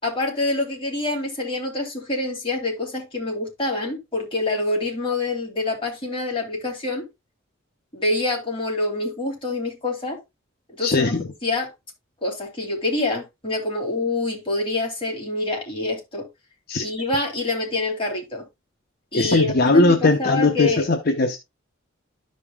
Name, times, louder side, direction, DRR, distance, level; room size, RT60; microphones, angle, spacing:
voice 1, 0.0-7.0 7.9-10.2 10.8-11.1 11.4-11.7 12.2-16.3 16.8-18.4 19.1-20.8, left 2 dB, 25° left, 2.9 m, -26 dB
voice 2, 10.8-11.3 16.7-16.8 19.1-21.4, left 3 dB, 50° left, 0.7 m, -19 dB
13.0 x 5.3 x 2.4 m
head